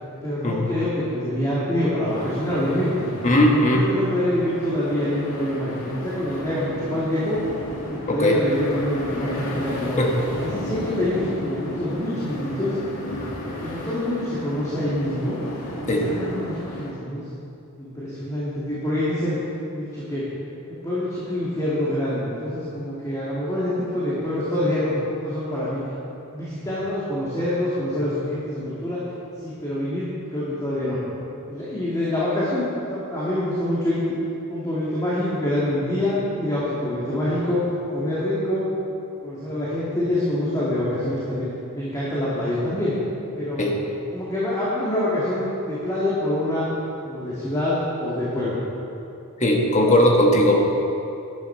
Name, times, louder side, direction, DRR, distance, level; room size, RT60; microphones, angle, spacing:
voice 1, 0.2-3.1 3.5-7.4 7.9-10.0 10.4-12.8 13.5-15.3 15.9-17.2 17.8-19.4 19.7-20.2 20.7-25.8 26.3-29.0 29.4-31.0 31.5-34.1 34.5-38.7 39.2-41.5 41.7-42.9 43.4-43.7 44.1-46.7 47.0-48.6, left 1 dB, 15° left, -9 dB, 2.2 m, -26 dB
sound 1, 2.0-16.9, left 1 dB, 70° left, 2.0 m, -34 dB
voice 2, 3.2-3.8 8.1-8.4 10.0-10.1 15.9-16.1 43.6-43.7 49.4-50.6, left 1 dB, 30° left, -1 dB, 1.4 m, -18 dB
12.0 x 11.0 x 4.5 m, 2.8 s
head